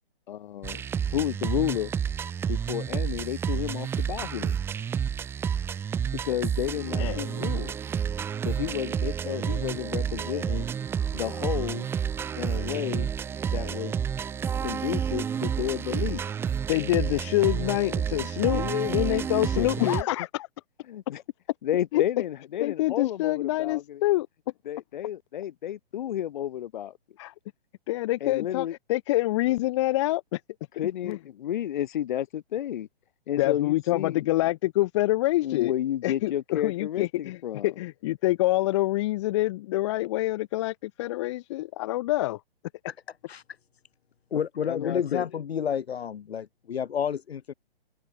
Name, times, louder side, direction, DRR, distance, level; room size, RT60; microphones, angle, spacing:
voice 1, 0.3-0.8 1.1-1.9 2.5-4.6 6.2-7.8 8.4-10.7 11.1-11.9 12.3-13.1 13.5-13.9 14.6-16.2 18.5-19.2 19.6-20.0 20.9-21.2 21.6-24.0 24.6-26.9 28.2-28.8 30.8-32.9 33.3-34.3 35.4-37.7 44.6-45.3, left 11 dB, 50° left, 6.9 m, -31 dB
sound 1, 0.6-20.0, right 7 dB, 10° right, 0.9 m, -30 dB
voice 2, 6.9-7.3 16.7-18.6 18.9-20.5 21.9-22.0 22.6-24.3 27.2-27.3 27.9-30.4 31.0-31.2 33.4-35.7 36.0-42.4, left 17 dB, 30° left, 0.9 m, -26 dB
voice 3, 44.3-47.5, left 8 dB, 80° left, 1.1 m, -30 dB
hypercardioid pair, 150°, 31 cm